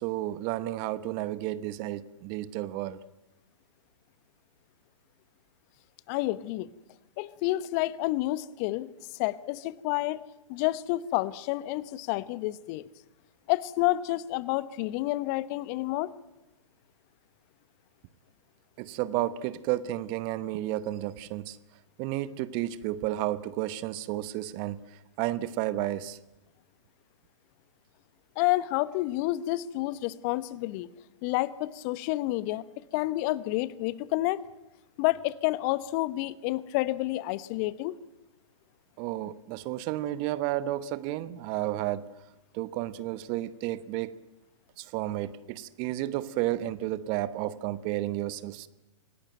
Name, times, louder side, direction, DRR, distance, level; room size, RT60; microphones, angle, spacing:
voice 1, 0.0-3.0 18.8-21.6 22.0-24.8 25.2-26.2 39.0-42.1 42.5-44.1 44.8-48.7, right 14 dB, 30° right, 16 dB, 1.0 m, -32 dB
voice 2, 6.1-6.7 7.2-8.9 9.2-12.9 13.5-16.1 28.4-30.9 31.2-32.6 32.9-34.4 35.0-38.0, left 17 dB, 35° left, 18 dB, 1.0 m, -29 dB
26.5 x 17.5 x 9.1 m, 1.0 s
figure-of-eight pair, 120°, 16 cm